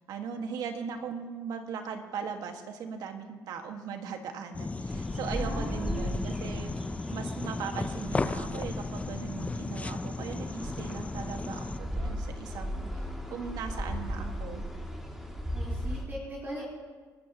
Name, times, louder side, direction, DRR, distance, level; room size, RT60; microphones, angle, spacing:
voice 1, 0.0-6.7 7.1-13.0 13.3-14.7, right 6 dB, 70° right, 4 dB, 1.8 m, -39 dB
sound 1, 4.5-11.8, left 3 dB, 20° left, 0.6 m, -35 dB
sound 2, 4.9-16.1, equal, 5° right, 2.6 m, -37 dB
voice 2, 5.3-6.2 15.5-16.6, right 1 dB, 35° right, -6 dB, 4.2 m, -40 dB
28.5 x 13.0 x 3.1 m, 1.5 s
supercardioid pair, 85°, 7 cm